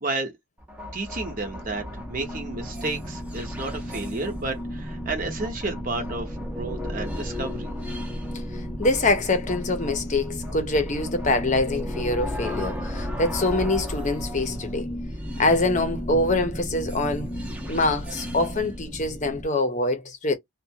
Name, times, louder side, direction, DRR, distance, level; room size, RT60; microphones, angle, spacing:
voice 1, 0.0-0.3 0.9-7.7, right 3 dB, 40° right, 0.8 m, -32 dB
sound 1, 0.6-19.4, equal, 5° right, 0.7 m, -33 dB
voice 2, 8.5-14.9 15.4-17.3 17.7-20.3, left 2 dB, 35° left, 0.7 m, -24 dB
2.5 x 2.2 x 2.7 m
head